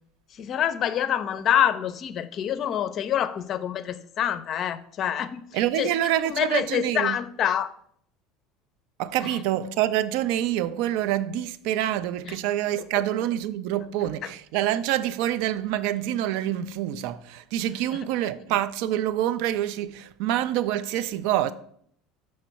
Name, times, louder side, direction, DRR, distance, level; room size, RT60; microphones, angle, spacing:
voice 1, 0.4-5.9 6.2-7.7 9.2-9.4 12.3-12.4 12.9-13.0 14.2-14.3 17.9-18.0, left 10 dB, 45° left, 0.5 m, -26 dB
voice 2, 5.5-7.2 9.0-21.5, right 12 dB, 65° right, 0.3 m, -26 dB
5.9 x 3.1 x 5.7 m
hypercardioid pair, 70°, 0 cm